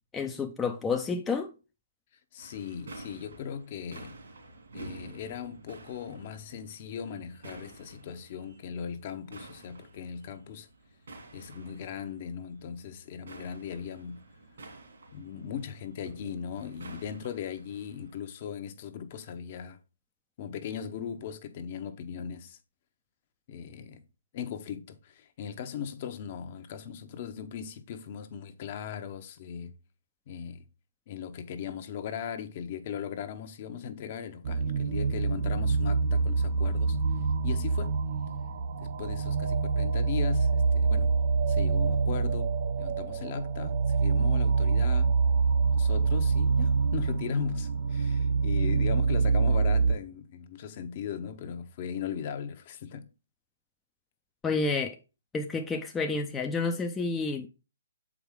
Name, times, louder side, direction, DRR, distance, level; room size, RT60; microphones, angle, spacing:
voice 1, 0.1-1.5 54.4-55.0 55.3-57.5, left 4 dB, 10° left, 0.5 m, -30 dB
voice 2, 2.3-4.2 4.7-10.7 11.3-14.2 15.1-19.8 20.4-22.6 23.5-24.0 24.3-29.7 30.3-30.6 31.1-37.0 37.4-37.9 38.8-41.1 41.5-45.2 45.7-53.1, left 8 dB, 40° left, 0.8 m, -38 dB
sound 1, 2.4-18.1, right 2 dB, 70° right, 2.7 m, -50 dB
sound 2, 34.4-49.9, right 4 dB, 50° right, 0.7 m, -26 dB
7.1 x 4.9 x 3.6 m
hypercardioid pair, 140°, 0 cm